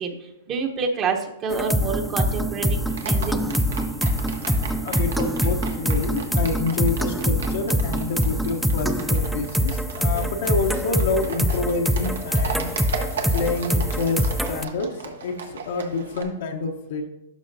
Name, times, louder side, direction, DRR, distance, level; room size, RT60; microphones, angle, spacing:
voice 1, 0.0-3.3, right 5 dB, 30° right, 4 dB, 0.9 m, -28 dB
Big Room House Loop, 1.5-14.6, equal, ahead, 0.4 m, -24 dB
Livestock farm animals working animals, 2.9-16.2, right 5 dB, 85° right, 1.1 m, -37 dB
voice 2, 4.8-12.7 13.3-17.1, left 3 dB, 65° left, 3 dB, 0.9 m, -28 dB
11.5 x 5.7 x 2.7 m, 0.88 s
hypercardioid pair, 135°, 0 cm